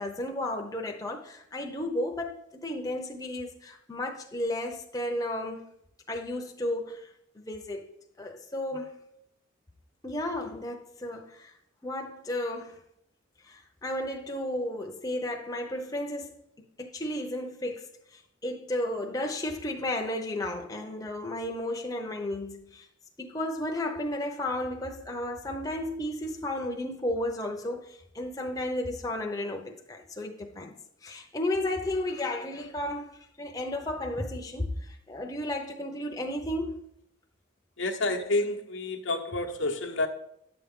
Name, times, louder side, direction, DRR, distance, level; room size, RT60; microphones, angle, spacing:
voice 1, 0.0-5.6 6.1-7.9 8.2-8.9 10.0-11.5 11.8-12.8 13.4-22.9 23.2-30.7 31.0-33.1 33.4-36.9, left 1 dB, 20° left, 0.7 m, -33 dB
voice 2, 37.8-40.1, left 2 dB, 75° left, 0.9 m, -29 dB
10.5 x 7.0 x 3.7 m
head